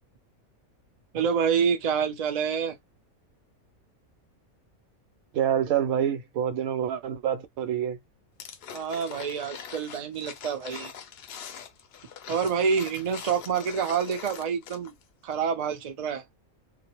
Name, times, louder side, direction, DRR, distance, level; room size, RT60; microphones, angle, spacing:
voice 1, 1.1-2.8 8.7-10.9 12.3-14.9 15.2-16.2, right 6 dB, 50° right, 0.4 m, -27 dB
voice 2, 5.3-8.0, right 9 dB, 90° right, 1.0 m, -27 dB
sound 1, 8.4-15.0 15.3-15.4, left 8 dB, 65° left, 0.6 m, -43 dB
2.4 x 2.0 x 2.9 m
omnidirectional pair, 1.4 m